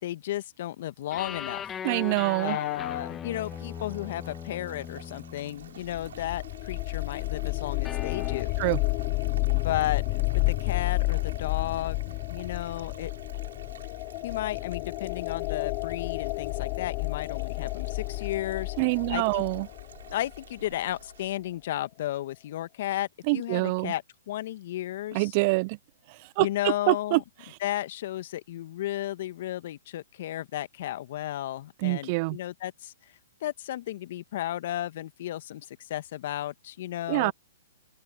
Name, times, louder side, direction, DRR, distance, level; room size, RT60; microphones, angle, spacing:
voice 1, 0.0-1.6 2.4-8.5 9.5-13.1 14.2-18.7 19.1-19.4 20.1-25.3 26.4-27.2 27.6-32.9 33.4-37.3, left 13 dB, 55° left, 1.5 m, -33 dB
sound 1, 1.1-6.3 7.8-8.5, left 9 dB, 20° left, 1.4 m, -39 dB
voice 2, 1.8-2.6 8.6-8.8 18.8-19.7 23.3-23.9 25.1-25.8 26.4-26.5 26.9-27.2 31.8-32.4 37.1-37.3, right 27 dB, 40° right, 0.3 m, -25 dB
sound 2, 3.3-21.3, right 8 dB, 70° right, 4.0 m, -51 dB
sound 3, 5.6-20.4, left 29 dB, 35° left, 1.9 m, -31 dB
open air
hypercardioid pair, 125°, 0 cm